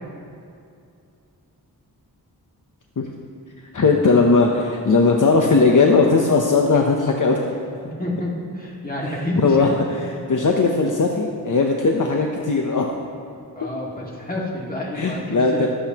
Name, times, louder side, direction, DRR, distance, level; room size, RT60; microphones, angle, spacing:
voice 1, 3.7-7.4 9.4-12.9 14.9-15.7, left 3 dB, 50° left, 1 dB, 0.8 m, -18 dB
voice 2, 7.8-9.7 13.6-15.7, left 1 dB, 20° left, -4 dB, 2.0 m, -28 dB
22.0 x 8.0 x 2.9 m, 2.5 s
wide cardioid pair, 100°, 38 cm